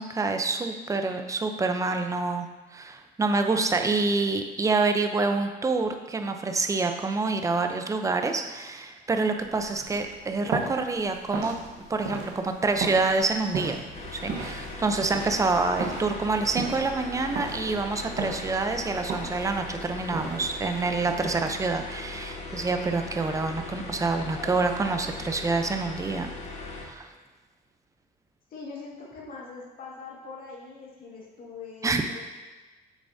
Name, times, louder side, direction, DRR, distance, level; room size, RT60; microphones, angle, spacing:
voice 1, 0.0-2.5 2.7-11.5 11.9-13.8 14.1-26.3 26.8-27.1 31.8-32.0, right 3 dB, 20° right, 6 dB, 0.6 m, -27 dB
sound 1, 9.3-21.6, right 4 dB, 80° right, 1.3 m, -37 dB
sound 2, 13.9-26.9, left 3 dB, 40° left, 1.2 m, -39 dB
voice 2, 28.5-32.2, left 4 dB, 55° left, -4 dB, 1.9 m, -42 dB
8.2 x 6.7 x 2.7 m, 1.2 s
cardioid pair, 110°, 17 cm